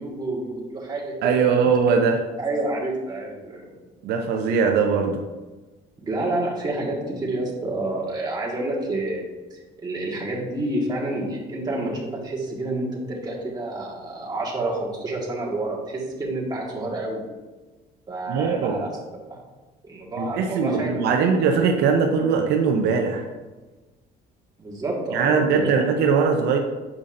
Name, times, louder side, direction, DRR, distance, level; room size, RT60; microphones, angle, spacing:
voice 1, 0.0-1.7 2.4-3.6 6.0-9.2 9.5-17.2 18.1-18.9 19.3-19.4 19.8-21.3 24.6-25.7, right 2 dB, 25° right, -3 dB, 1.6 m, -29 dB
voice 2, 1.2-2.2 4.0-5.2 18.3-18.8 20.2-23.3 25.1-26.6, right 5 dB, 75° right, 4 dB, 0.6 m, -21 dB
7.2 x 5.1 x 2.5 m, 1.2 s
cardioid pair, 110°, 17 cm